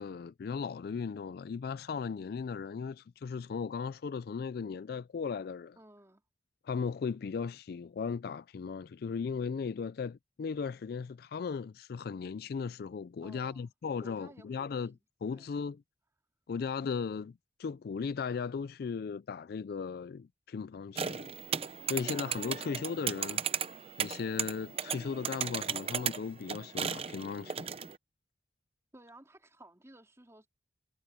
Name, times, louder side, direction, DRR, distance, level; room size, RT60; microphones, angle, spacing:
voice 1, 0.0-5.8 6.6-14.9 15.2-15.8 16.5-21.3 21.9-23.4 24.0-27.7, left 5 dB, 55° left, 0.3 m, -37 dB
voice 2, 5.8-6.2 13.2-13.7 14.0-14.9 15.3-15.5 28.9-30.5, right 1 dB, 15° right, 3.2 m, -55 dB
sound 1, 20.9-28.0, right 7 dB, 35° right, 0.7 m, -36 dB
head